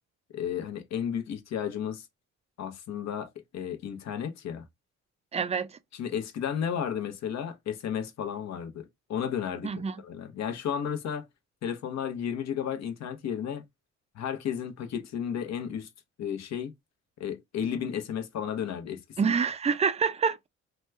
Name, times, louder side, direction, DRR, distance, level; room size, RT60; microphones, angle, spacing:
voice 1, 0.3-2.1 2.6-4.6 5.9-11.3 11.6-13.6 14.1-15.9 16.2-16.7 17.2-19.3, left 8 dB, 60° left, 0.8 m, -33 dB
voice 2, 5.3-5.7 9.6-10.0 19.2-20.5, right 6 dB, 20° right, 0.4 m, -27 dB
3.0 x 2.2 x 3.2 m
cardioid pair, 90°, 30 cm